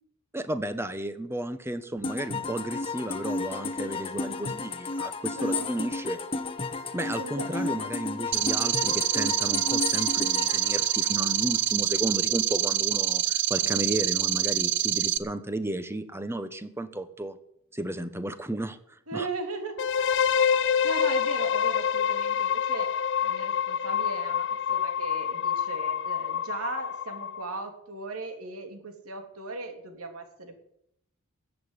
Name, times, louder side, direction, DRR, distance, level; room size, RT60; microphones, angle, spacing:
voice 1, 0.3-6.2 6.9-17.4 17.7-19.3, right 1 dB, 10° right, 11 dB, 1.1 m, -33 dB
sound 1, 2.0-11.7, left 3 dB, 25° left, 1.1 m, -33 dB
voice 2, 3.9-4.6 5.4-5.9 7.0-7.9 13.5-13.8 19.1-20.1 20.3-22.9 23.2-30.5, right 3 dB, 80° right, 5 dB, 3.3 m, -38 dB
sound 2, 8.3-15.2, right 12 dB, 55° right, 0.9 m, -26 dB
sound 3, 19.8-27.6, left 7 dB, 55° left, 0.6 m, -27 dB
14.5 x 8.6 x 9.7 m, 0.75 s
head